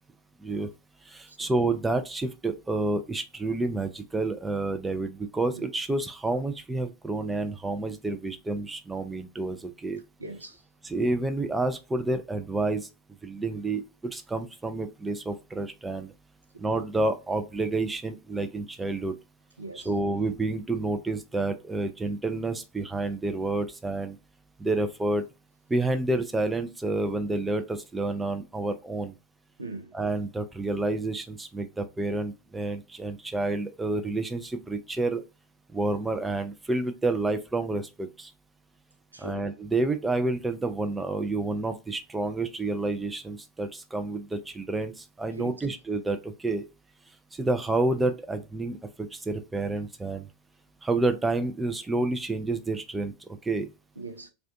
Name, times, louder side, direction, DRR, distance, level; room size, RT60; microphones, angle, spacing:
voice 1, 1.1-10.0 10.8-12.9 13.2-16.1 16.6-19.2 19.7-24.2 24.6-25.3 25.7-29.1 29.9-35.2 35.7-38.3 39.2-46.6 47.3-50.3 50.8-53.7, right 2 dB, 10° right, 0.3 m, -29 dB
voice 2, 10.2-10.6 19.6-19.9 29.6-29.9 39.1-39.5 45.4-45.5 54.0-54.3, right 2 dB, 80° right, 0.4 m, -40 dB
2.4 x 2.1 x 2.6 m
figure-of-eight pair, 90°, 0 cm